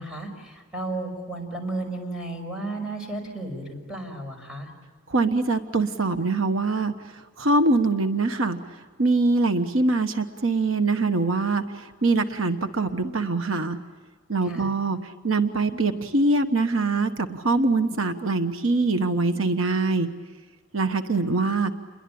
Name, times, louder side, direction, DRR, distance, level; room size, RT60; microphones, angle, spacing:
voice 1, 0.0-4.7 14.4-14.7, right 2 dB, 5° right, 2 dB, 5.8 m, -33 dB
voice 2, 5.1-6.9 7.4-8.6 9.0-13.8 14.3-20.1 20.7-21.7, right 3 dB, 80° right, 7 dB, 1.3 m, -23 dB
29.0 x 22.0 x 8.6 m, 1.5 s
head